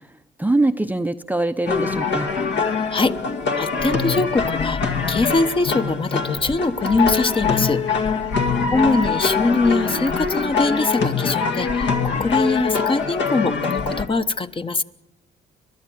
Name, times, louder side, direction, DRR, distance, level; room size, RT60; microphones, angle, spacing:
voice 1, 0.4-2.3 8.6-9.0, right 2 dB, 10° right, 8 dB, 0.7 m, -23 dB
sound 1, 1.7-14.1, left 5 dB, 65° left, 2.0 m, -23 dB
voice 2, 3.6-7.8 8.7-14.8, left 3 dB, 25° left, 10 dB, 0.9 m, -22 dB
29.5 x 12.0 x 7.8 m, 0.97 s
cardioid pair, 90°, 20 cm